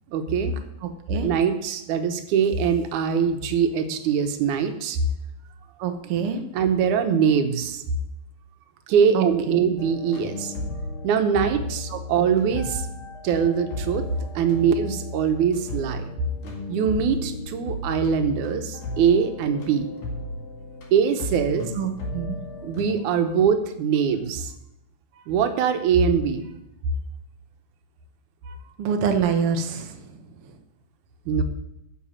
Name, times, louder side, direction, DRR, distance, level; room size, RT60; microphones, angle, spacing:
voice 1, 0.1-0.5 1.2-5.0 6.0-6.1 6.5-7.8 8.9-10.5 11.0-12.8 13.2-14.1 14.4-16.0 16.7-19.9 20.9-21.7 22.6-24.5 25.3-26.5 28.5-28.6 31.3-31.4, right 7 dB, 85° right, 7 dB, 2.4 m, -22 dB
voice 2, 5.8-6.4 9.1-9.6 21.8-22.4 28.8-30.0, right 6 dB, 60° right, 5 dB, 1.8 m, -25 dB
sound 1, 9.8-22.8, left 2 dB, 80° left, 3.7 m, -34 dB
10.0 x 6.6 x 7.5 m, 0.87 s
omnidirectional pair, 3.4 m